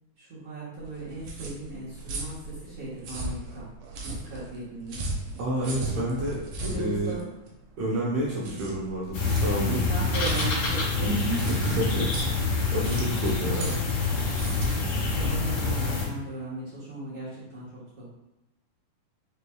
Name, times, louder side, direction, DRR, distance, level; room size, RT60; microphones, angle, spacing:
voice 1, 0.2-3.7 4.0-5.0 5.6-5.9 6.6-7.3 8.5-8.7 9.9-11.5 13.5-13.9 15.1-18.1, right 2 dB, 55° right, -10 dB, 1.8 m, -36 dB
sound 1, 0.8-16.0, right 2 dB, 85° right, 2.4 m, -37 dB
voice 2, 5.4-6.4 6.8-7.1 7.8-9.8 11.4-12.4 12.7-13.7, right 1 dB, 70° right, -6 dB, 1.7 m, -29 dB
sound 2, 9.1-16.1, left 3 dB, 65° left, 2.7 m, -27 dB
5.5 x 3.3 x 2.3 m, 0.95 s
omnidirectional pair, 3.7 m